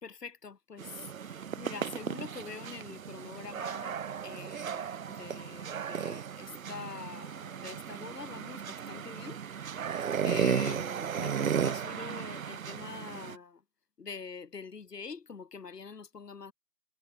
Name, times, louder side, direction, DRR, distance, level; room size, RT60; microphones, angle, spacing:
voice 1, 0.0-13.6 14.0-16.5, left 5 dB, 75° left, 1.3 m, -45 dB
sound 1, 0.8-13.4, right 7 dB, 60° right, 0.7 m, -35 dB
figure-of-eight pair, 145°, 48 cm